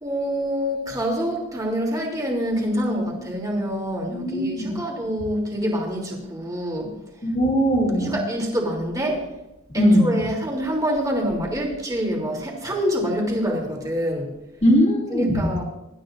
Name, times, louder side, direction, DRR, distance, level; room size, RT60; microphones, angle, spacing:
voice 1, 0.0-6.9 8.0-9.2 9.7-14.3 15.1-15.6, equal, 15° right, -1 dB, 3.2 m, -26 dB
voice 2, 4.1-4.8 7.2-8.2 9.7-10.1 14.6-15.6, equal, 30° left, -3 dB, 2.7 m, -20 dB
25.5 x 13.0 x 2.6 m, 0.91 s
head